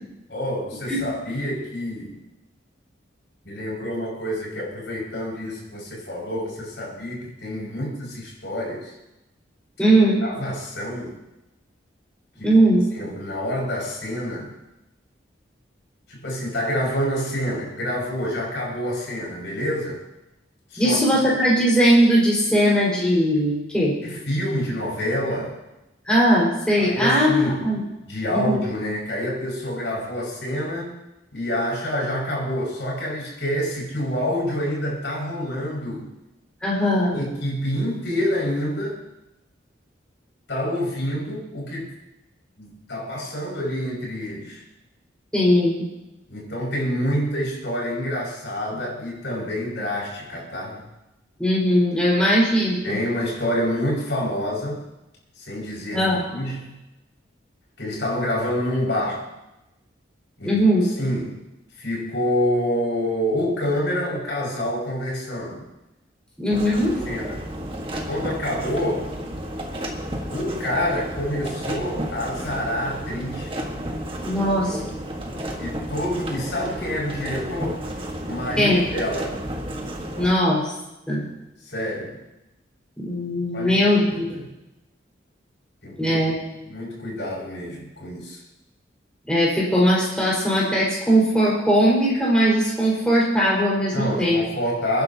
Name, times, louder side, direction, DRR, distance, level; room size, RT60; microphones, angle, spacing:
voice 1, 0.3-2.1 3.4-8.9 10.2-11.1 12.4-12.5 13.0-14.5 16.1-20.0 20.7-21.0 24.0-25.6 26.8-27.7 28.1-30.9 31.3-36.1 37.1-39.0 40.5-41.9 42.6-44.6 46.3-50.8 52.8-54.8 55.4-56.8 57.8-59.2 60.4-60.6 61.0-61.4 61.8-65.7 66.5-66.8 67.1-67.5 68.1-69.1 70.3-73.6 75.6-77.9 78.3-79.4 81.6-82.2 83.5-83.8 84.3-84.4 85.8-86.2 86.6-88.4 93.9-95.0, equal, 70° left, -3 dB, 6.0 m, -27 dB
voice 2, 9.8-10.2 12.4-12.8 20.8-23.9 26.1-27.8 28.3-28.6 36.6-37.1 45.3-45.8 51.4-53.0 55.9-56.3 60.4-60.9 66.4-67.0 74.2-74.8 78.6-78.8 80.2-80.7 81.1-81.3 83.0-84.3 86.0-86.3 89.3-94.4, equal, 5° left, -7 dB, 5.1 m, -19 dB
sound 1, 66.5-80.3, equal, 30° right, 1.6 m, -32 dB
29.5 x 10.5 x 2.9 m, 0.95 s
head